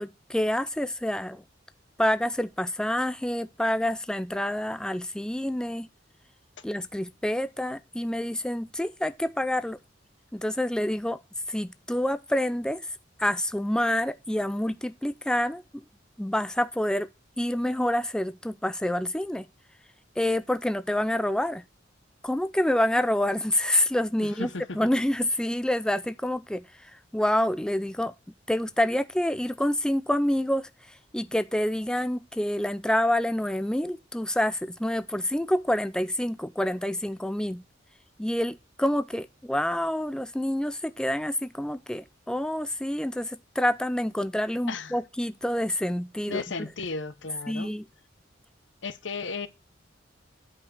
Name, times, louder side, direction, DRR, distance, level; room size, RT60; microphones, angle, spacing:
voice 1, 0.0-1.4 2.0-5.9 6.6-9.8 10.3-11.2 11.5-15.8 16.2-17.1 17.4-19.5 20.2-21.6 22.2-24.5 24.7-28.1 28.5-37.6 38.2-46.7 47.5-47.9, left 1 dB, 5° left, 0.4 m, -27 dB
voice 2, 24.2-24.8 44.7-44.9 46.3-47.7 48.8-49.5, left 4 dB, 85° left, 0.9 m, -34 dB
8.7 x 5.1 x 6.2 m
head